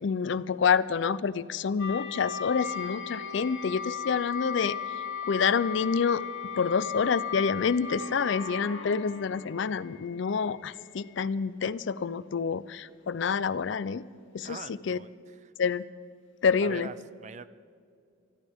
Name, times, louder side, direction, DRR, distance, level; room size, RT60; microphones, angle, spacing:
voice 1, 0.0-4.8 5.3-6.2 6.6-14.0 14.3-14.6 14.9-15.0 15.6-15.8 16.4-16.9, left 6 dB, 65° left, 17 dB, 0.4 m, -27 dB
sound 1, 1.8-9.8, left 7 dB, 80° left, 1.9 m, -36 dB
sound 2, 2.6-11.3, left 7 dB, 10° right, 2.4 m, -50 dB
voice 2, 14.4-15.5 16.6-17.5, right 4 dB, 35° right, 15 dB, 0.4 m, -43 dB
23.5 x 13.5 x 3.6 m, 2.3 s
head